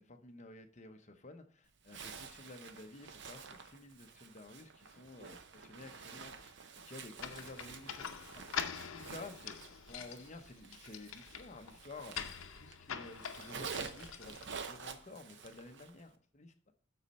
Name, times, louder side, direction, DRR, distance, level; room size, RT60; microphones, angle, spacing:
voice 1, 0.0-6.6 6.8-8.4 8.9-16.7, left 2 dB, 35° left, 0.8 m, -52 dB
Zipper (clothing), 1.8-12.8 13.0-16.0, right 5 dB, 60° right, 0.8 m, -49 dB
sound 1, 7.2-14.8, left 7 dB, 80° left, 0.7 m, -45 dB
11.5 x 4.2 x 4.2 m
head